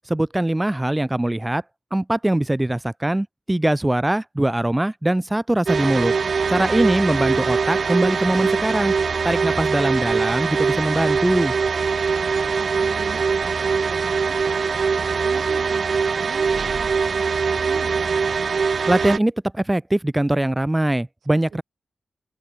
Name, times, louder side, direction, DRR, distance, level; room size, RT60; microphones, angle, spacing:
voice 1, 0.1-1.6 1.9-6.1 6.5-8.9 9.2-11.5 18.9-21.6, right 1 dB, 15° right, 0.6 m, -22 dB
sound 1, 5.7-19.2, right 5 dB, 65° right, 1.0 m, -22 dB
voice 2, 6.4-6.7 12.0-18.1 21.5-21.6, right 7 dB, 80° right, 2.0 m, -41 dB
open air
cardioid pair, 55°, 0 cm